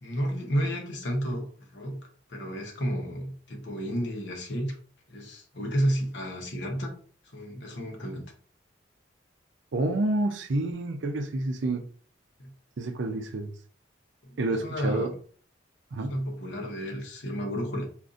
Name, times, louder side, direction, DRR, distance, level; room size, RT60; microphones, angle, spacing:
voice 1, 0.0-2.0 2.3-4.8 5.1-6.9 7.3-8.3 12.4-12.5 14.2-15.2 16.1-17.8, equal, 70° left, 0.9 m, -31 dB
voice 2, 9.7-11.8 12.8-13.5 14.4-15.1 15.9-16.1, right 2 dB, 75° right, 0.5 m, -28 dB
3.7 x 2.5 x 2.5 m
head